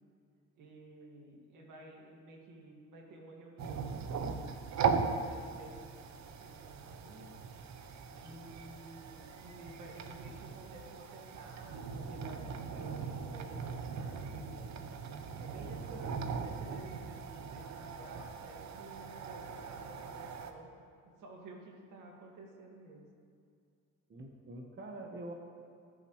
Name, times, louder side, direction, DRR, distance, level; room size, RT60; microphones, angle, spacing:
voice 1, 0.5-7.4 8.1-14.8 15.3-20.7 21.2-23.1, right 2 dB, 80° right, -1 dB, 2.1 m, -53 dB
sound 1, 3.6-20.5, right 5 dB, 65° right, 0.9 m, -39 dB
voice 2, 24.1-25.3, right 2 dB, 40° right, 2 dB, 1.2 m, -45 dB
18.5 x 7.2 x 3.2 m, 2.3 s
cardioid pair, 90°, 30 cm